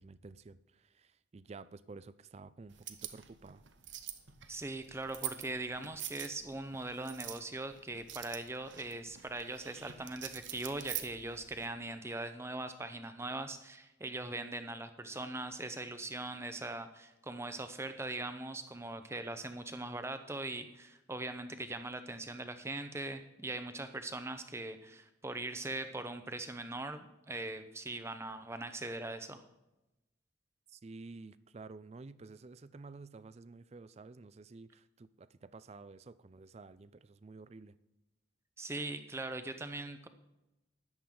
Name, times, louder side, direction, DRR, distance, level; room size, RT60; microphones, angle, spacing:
voice 1, 0.0-3.6 30.7-37.7, right 3 dB, 35° right, 16 dB, 0.4 m, -51 dB
sound 1, 2.7-11.7, right 12 dB, 75° right, 0.9 m, -46 dB
voice 2, 4.5-29.4 38.6-40.1, right 2 dB, 15° right, 9 dB, 0.8 m, -41 dB
13.5 x 10.5 x 3.9 m, 0.94 s
head